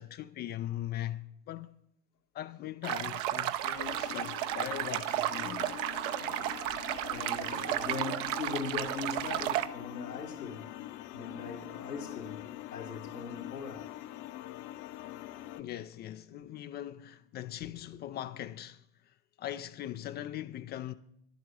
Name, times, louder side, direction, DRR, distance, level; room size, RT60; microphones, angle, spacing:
voice 1, 0.0-1.7 2.3-5.8 15.6-20.9, left 12 dB, 25° left, 0.4 m, -40 dB
sound 1, 2.8-9.7, right 13 dB, 55° right, 0.8 m, -33 dB
sound 2, 3.8-15.6, left 14 dB, 50° left, 0.9 m, -44 dB
voice 2, 7.1-10.7 11.1-13.9 16.3-16.5 17.6-17.7, left 4 dB, 90° left, 2.0 m, -40 dB
11.0 x 7.8 x 8.2 m
hypercardioid pair, 85°, 45 cm